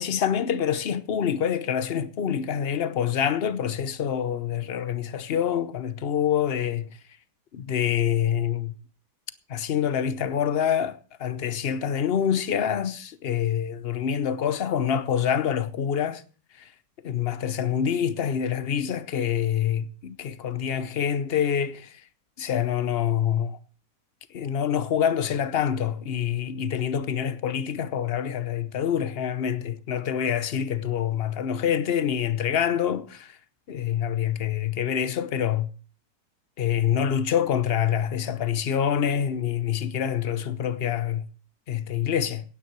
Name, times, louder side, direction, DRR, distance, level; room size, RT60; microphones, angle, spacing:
voice 1, 0.0-6.9 7.5-8.7 9.5-16.2 16.6-16.7 17.0-22.0 22.4-23.6 24.3-33.4 33.7-35.7 36.6-41.3 41.7-42.4, left 9 dB, 50° left, 0.8 m, -26 dB
16.5 x 9.4 x 4.6 m
omnidirectional pair, 1.8 m